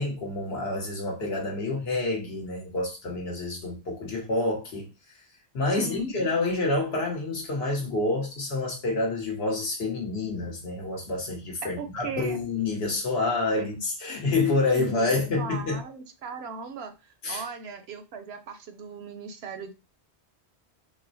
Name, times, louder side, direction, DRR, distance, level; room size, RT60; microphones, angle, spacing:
voice 1, 0.0-4.9 5.5-15.8 17.2-17.4, left 2 dB, 65° left, 1.2 m, -28 dB
voice 2, 5.7-6.1 11.8-12.4 13.6-13.8 14.7-19.7, right 4 dB, 70° right, 0.8 m, -38 dB
4.1 x 2.1 x 2.6 m
omnidirectional pair, 1.2 m